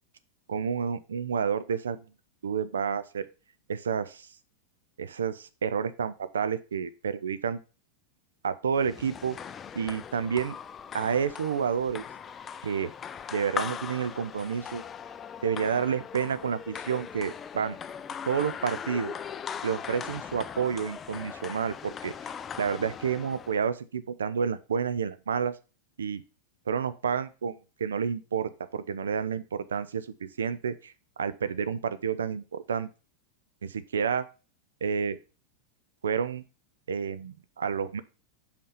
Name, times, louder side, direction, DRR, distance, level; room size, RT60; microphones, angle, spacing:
voice 1, 0.5-2.0 2.4-3.2 3.7-4.3 5.0-7.6 8.4-9.4 9.8-10.6 10.9-12.0 12.6-12.9 13.3-14.8 15.4-17.8 18.2-19.2 19.6-22.3 22.6-25.5 26.0-26.2 26.7-30.9 31.2-32.9 33.6-34.3 34.8-35.2 36.0-36.4 36.9-38.0, right 7 dB, 65° right, 13 dB, 0.5 m, -30 dB
sound 1, 8.8-23.6, left 7 dB, 25° left, 0.4 m, -40 dB
5.4 x 5.1 x 5.6 m, 0.33 s
figure-of-eight pair, 90°, 0 cm